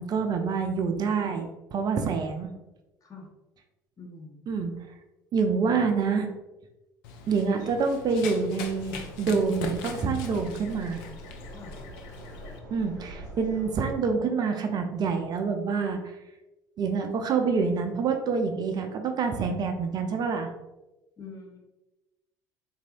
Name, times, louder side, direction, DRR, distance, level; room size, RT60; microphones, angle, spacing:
voice 1, 0.0-2.5 4.5-4.7 5.3-6.3 7.3-11.0 12.7-16.1 16.8-20.5, right 5 dB, 45° right, 5 dB, 0.4 m, -27 dB
voice 2, 4.0-4.4 5.6-6.0 11.5-11.8 21.2-21.6, left 3 dB, 35° left, 0 dB, 1.0 m, -45 dB
Run, 7.0-12.6, left 5 dB, 70° left, 0.4 m, -41 dB
sound 1, 8.6-13.8, equal, 90° right, 0.7 m, -45 dB
4.1 x 2.6 x 2.5 m, 1.0 s
hypercardioid pair, 60°, 10 cm